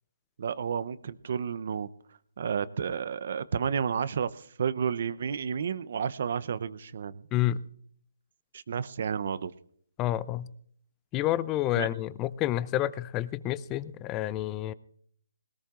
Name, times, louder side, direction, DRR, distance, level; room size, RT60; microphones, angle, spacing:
voice 1, 0.4-1.9 2.4-7.2 8.5-9.5 11.7-11.9, right 7 dB, 50° right, 15 dB, 0.7 m, -31 dB
voice 2, 7.3-7.6 10.0-10.5 11.1-14.7, left 14 dB, 15° left, 19 dB, 0.5 m, -29 dB
20.5 x 19.0 x 2.5 m, 0.64 s
hypercardioid pair, 155°, 0 cm